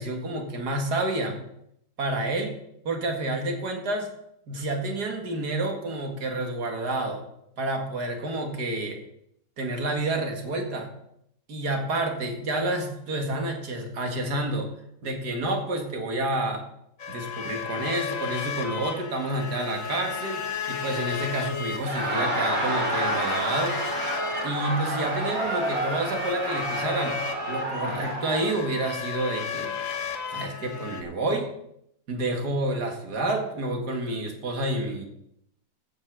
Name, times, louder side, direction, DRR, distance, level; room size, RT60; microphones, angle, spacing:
voice 1, 0.0-1.4 2.0-2.6 2.8-4.1 4.5-7.2 7.6-9.0 9.6-10.9 11.5-14.7 15.0-16.6 17.1-20.4 20.7-23.8 24.4-27.2 27.5-29.7 30.3-31.5 32.1-35.1, right 2 dB, 60° right, 4 dB, 2.3 m, -29 dB
sound 1, 17.0-31.0, left 5 dB, 50° left, 1.4 m, -34 dB
Laughter, 21.7-28.5, right 1 dB, 90° right, 3.4 m, -29 dB
15.0 x 5.6 x 6.2 m, 0.76 s
omnidirectional pair, 1.9 m